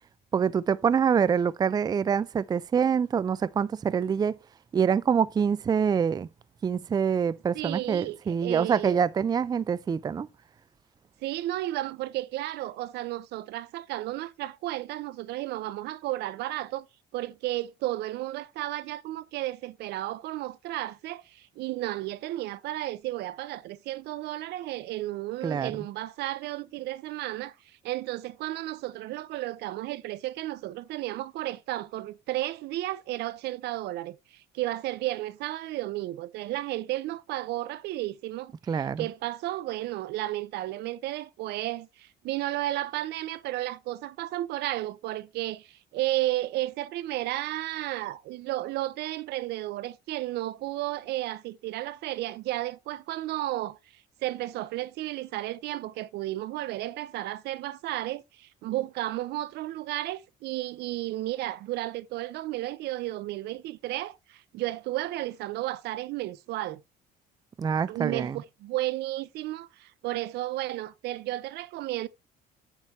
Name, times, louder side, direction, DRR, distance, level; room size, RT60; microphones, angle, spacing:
voice 1, 0.3-4.4 4.7-6.3 6.6-10.3 25.4-25.8 38.7-39.1 67.6-68.4, right 7 dB, 25° right, 0.4 m, -25 dB
voice 2, 7.5-9.0 11.2-16.9 17.1-66.8 67.9-72.1, right 16 dB, 80° right, 0.6 m, -33 dB
9.1 x 7.2 x 3.1 m
cardioid pair, 110°, 17 cm